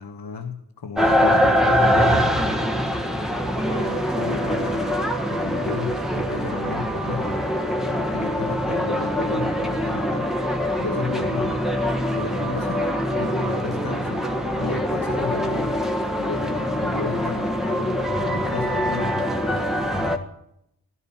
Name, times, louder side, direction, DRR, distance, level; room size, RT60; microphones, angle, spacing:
voice 1, 0.0-2.3 3.7-7.4 7.9-10.3 10.8-11.6 12.1-12.9 13.2-15.8 16.2-19.2, left 5 dB, 80° left, 2 dB, 1.5 m, -34 dB
sound 1, 1.0-20.2, equal, ahead, 1.5 m, -23 dB
17.0 x 11.5 x 6.0 m, 0.77 s
wide cardioid pair, 110°, 39 cm